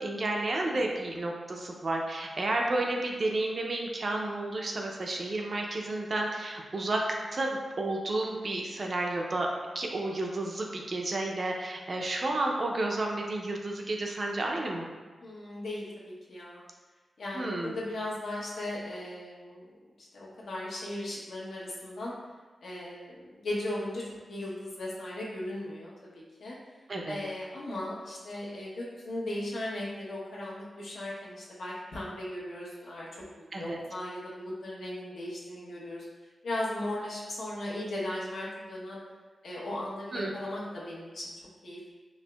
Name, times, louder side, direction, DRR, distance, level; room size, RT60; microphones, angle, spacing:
voice 1, 0.0-7.0 7.3-9.5 9.7-14.9 17.3-17.8 26.9-27.2 33.5-33.8 40.1-40.3, right 2 dB, 45° right, 0 dB, 0.4 m, -31 dB
voice 2, 15.2-16.6 17.2-19.6 20.0-22.1 22.6-24.0 24.3-26.5 27.1-33.1 33.3-36.1 36.4-39.0 39.4-41.3 41.6-41.9, left 1 dB, 85° left, -6 dB, 0.9 m, -37 dB
4.3 x 2.9 x 2.2 m, 1.3 s
wide cardioid pair, 145°, 0 cm